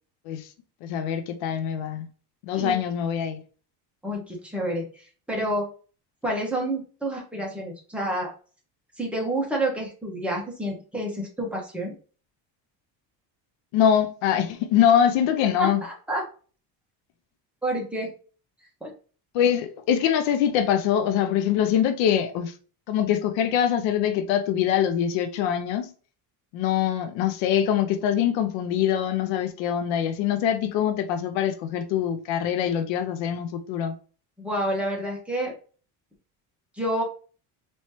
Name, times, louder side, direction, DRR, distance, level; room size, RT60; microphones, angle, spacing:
voice 1, 0.8-2.1 2.4-3.4 13.7-15.8 19.3-22.5 22.9-25.9 26.5-33.9, left 9 dB, 80° left, 0.7 m, -23 dB
voice 2, 2.5-2.9 4.0-5.7 6.2-8.3 9.0-11.9 15.6-16.2 17.6-18.1 18.8-18.9 34.4-35.5 36.7-37.0, right 1 dB, 5° right, 1.4 m, -29 dB
4.3 x 3.1 x 3.0 m
cardioid pair, 130°, 45 cm